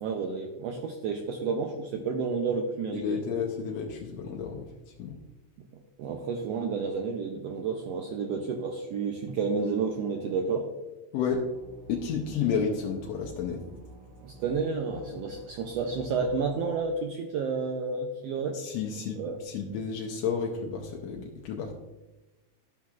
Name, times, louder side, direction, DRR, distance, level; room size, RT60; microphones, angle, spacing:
voice 1, 0.0-3.2 6.0-10.7 14.2-18.6 19.2-19.4, right 5 dB, 85° right, 3 dB, 1.4 m, -31 dB
voice 2, 2.9-5.2 11.1-11.5 11.9-13.6 18.5-21.7, left 6 dB, 75° left, -1 dB, 1.6 m, -31 dB
sound 1, 11.3-16.7, right 1 dB, 70° right, 1.8 m, -50 dB
12.5 x 6.0 x 2.4 m, 1.1 s
omnidirectional pair, 3.5 m